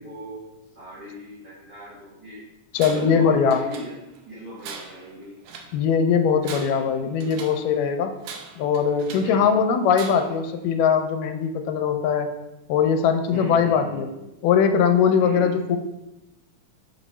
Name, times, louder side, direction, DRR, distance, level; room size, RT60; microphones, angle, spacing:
voice 1, 0.0-2.4 2.9-3.9 4.3-5.4 9.2-9.6 13.3-14.1 15.2-15.6, equal, 45° right, -9 dB, 1.3 m, -37 dB
voice 2, 2.7-3.7 5.7-8.1 8.6-12.3 12.7-14.1 14.4-15.8, left 6 dB, 85° left, 6 dB, 2.1 m, -21 dB
Tools, 2.8-3.2 3.5-4.2 4.6-5.8 6.3-7.7 8.2-9.4 9.9-10.4, right 6 dB, 85° right, 1.5 m, -40 dB
6.5 x 3.0 x 5.4 m, 0.98 s
omnidirectional pair, 3.8 m